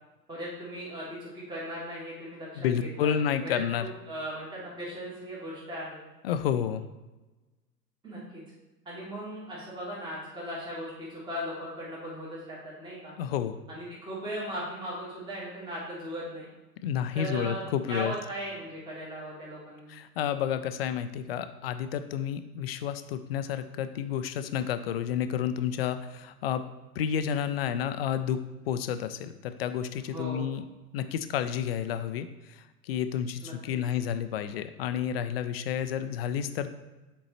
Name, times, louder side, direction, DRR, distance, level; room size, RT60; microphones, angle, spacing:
voice 1, 0.3-2.5 2.8-6.0 8.0-8.4 8.8-13.1 13.7-16.5 17.1-17.6 17.9-19.9 30.0-30.5 33.4-33.9, equal, 10° right, -6 dB, 1.5 m, -38 dB
voice 2, 2.6-3.9 6.2-6.8 13.2-13.6 16.8-18.1 19.9-26.6 27.0-28.4 28.7-30.6 30.9-32.6 32.8-36.7, left 9 dB, 40° left, 10 dB, 0.4 m, -30 dB
7.3 x 4.5 x 3.0 m, 1.1 s
figure-of-eight pair, 90°, 49 cm